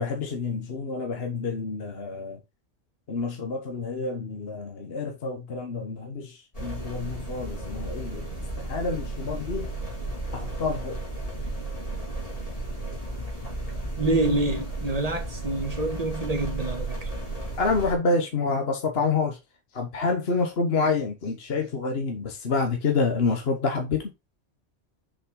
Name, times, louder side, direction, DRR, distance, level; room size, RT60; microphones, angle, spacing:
voice 1, 0.0-2.4 3.1-9.7 10.3-11.0 17.6-19.4 19.7-24.0, left 4 dB, 55° left, 1.5 m, -28 dB
sound 1, 6.5-18.0, right 2 dB, 30° left, 2.7 m, -34 dB
voice 2, 14.0-17.1, right 2 dB, 30° right, 1.7 m, -27 dB
6.7 x 5.4 x 3.8 m
omnidirectional pair, 1.2 m